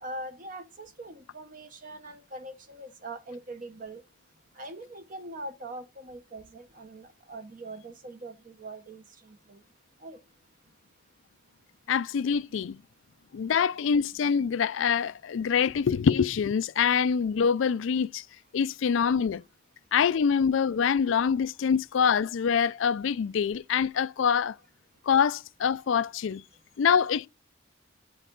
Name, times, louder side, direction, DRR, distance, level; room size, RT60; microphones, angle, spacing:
voice 1, 0.0-4.0 4.6-9.6 10.0-10.2, right 2 dB, 40° right, 0.8 m, -42 dB
voice 2, 11.9-12.8 13.3-18.2 18.5-19.4 19.9-24.6 25.1-26.4 26.8-27.3, left 7 dB, 70° left, 0.4 m, -25 dB
10.5 x 4.6 x 3.8 m
head